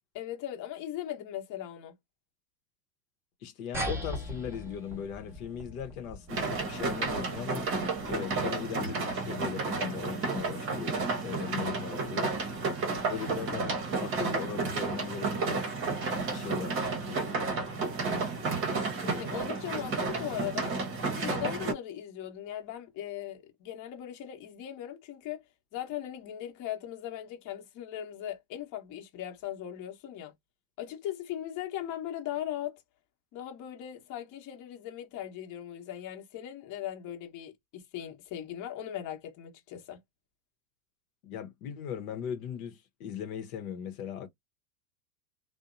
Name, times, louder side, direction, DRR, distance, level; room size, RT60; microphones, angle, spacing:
voice 1, 0.1-1.9 19.0-20.8 21.0-25.4 25.7-30.3 30.8-32.8 33.3-40.0, left 11 dB, 40° left, 1.0 m, -39 dB
voice 2, 3.4-7.7 8.1-12.3 13.1-15.7 16.3-17.6 41.2-44.3, left 8 dB, 65° left, 0.9 m, -39 dB
sound 1, 3.7-8.6, equal, 5° right, 0.9 m, -40 dB
sound 2, 6.3-21.7, right 4 dB, 25° right, 0.9 m, -32 dB
2.6 x 2.1 x 2.5 m
hypercardioid pair, 120°, 46 cm